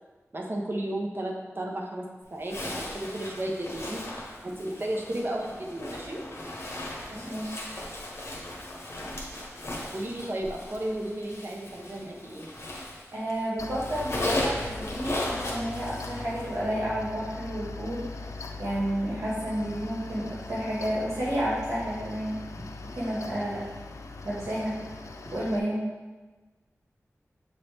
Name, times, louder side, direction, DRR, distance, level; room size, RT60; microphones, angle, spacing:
voice 1, 0.3-4.0 4.4-6.2 9.9-12.5 25.1-25.3, right 1 dB, 45° right, -1 dB, 1.1 m, -33 dB
Zipper (clothing), 2.4-13.3 13.6-16.6, left 1 dB, 55° left, 1.5 m, -36 dB
voice 2, 7.1-7.6 13.1-18.1 18.6-22.4 23.0-23.6 24.2-24.7 25.3-25.8, right 1 dB, 70° right, -8 dB, 1.9 m, -31 dB
Mechanical fan, 13.6-25.6, left 3 dB, 75° left, 0.5 m, -41 dB
7.5 x 4.2 x 3.5 m, 1.2 s
wide cardioid pair, 65°, 5 cm